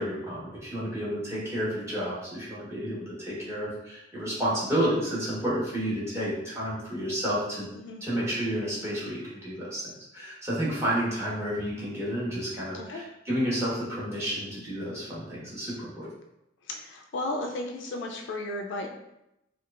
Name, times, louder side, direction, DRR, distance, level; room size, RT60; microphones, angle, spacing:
voice 1, 0.0-7.7 8.0-16.1, equal, 15° right, -8 dB, 1.2 m, -31 dB
voice 2, 16.7-18.9, left 2 dB, 65° left, 2 dB, 0.4 m, -34 dB
4.5 x 2.4 x 2.5 m, 0.86 s
head